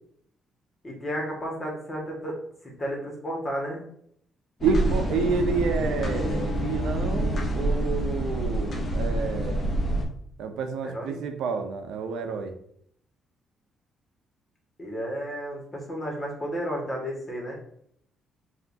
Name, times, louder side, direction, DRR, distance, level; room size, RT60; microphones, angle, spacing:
voice 1, 0.8-2.4 2.6-3.8 10.8-11.2 14.8-17.6, equal, 30° left, -1 dB, 1.7 m, -32 dB
sound 1, 4.6-10.1, right 1 dB, 45° left, 0.9 m, -27 dB
voice 2, 4.6-9.7 10.4-12.5, right 5 dB, 85° right, 6 dB, 0.6 m, -29 dB
5.4 x 2.8 x 2.7 m, 0.67 s
cardioid pair, 90°, 0 cm